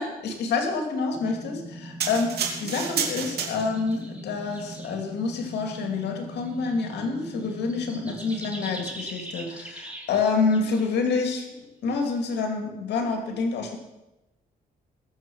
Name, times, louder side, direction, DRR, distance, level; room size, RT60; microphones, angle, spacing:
voice 1, 0.0-11.5 11.8-13.8, left 4 dB, 90° left, 4 dB, 2.3 m, -27 dB
sound 1, 1.1-8.8, right 1 dB, 30° right, 3.1 m, -42 dB
sound 2, 2.0-4.0 4.6-4.8, right 6 dB, 75° right, 2.6 m, -30 dB
sound 3, 3.6-4.2 4.5-5.0 5.8-6.0 6.3-10.2 10.5-10.9 12.0-12.3, right 1 dB, 10° right, 3.4 m, -42 dB
21.0 x 7.3 x 6.2 m, 0.99 s
cardioid pair, 110°, 17 cm